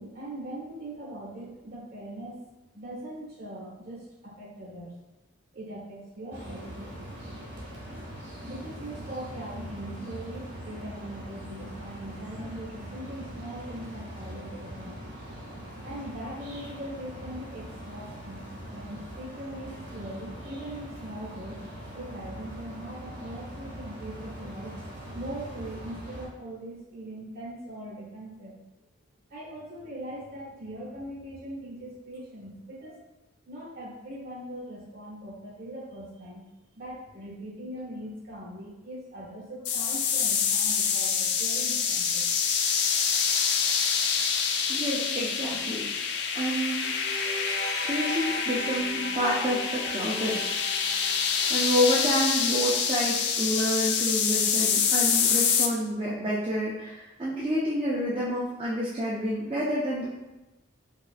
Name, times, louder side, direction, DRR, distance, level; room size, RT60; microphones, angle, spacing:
voice 1, 0.0-2.4 2.7-5.0 5.5-7.0 8.4-15.0 15.8-18.4 18.7-21.6 21.9-28.6 29.3-33.0 33.4-36.4 36.7-42.3, right 1 dB, 50° right, -7 dB, 1.4 m, -41 dB
sound 1, 6.3-26.3, equal, 70° right, 1.3 m, -41 dB
sound 2, 39.7-55.7, left 6 dB, 60° left, 0.3 m, -26 dB
voice 2, 44.7-45.9 46.3-46.9 47.9-50.5 51.5-60.1, equal, 30° right, -8 dB, 0.5 m, -28 dB
sound 3, 46.8-52.3 52.5-52.6, right 2 dB, 85° right, 0.6 m, -39 dB
5.3 x 2.4 x 2.5 m, 1.0 s
head